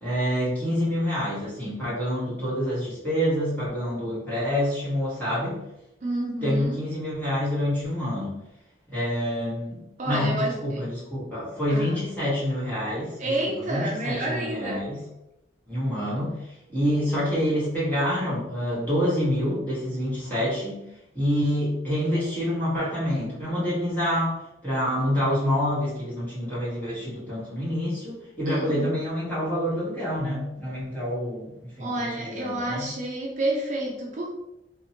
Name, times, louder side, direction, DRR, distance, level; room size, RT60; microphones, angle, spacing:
voice 1, 0.0-5.6 6.4-8.4 8.9-15.0 15.7-20.8 21.1-32.9, equal, 10° left, -10 dB, 1.4 m, -27 dB
voice 2, 6.0-6.8 10.0-10.8 11.7-12.0 13.2-14.8 28.5-28.9 31.8-34.3, right 1 dB, 40° right, -3 dB, 0.5 m, -29 dB
2.7 x 2.4 x 2.8 m, 0.87 s
head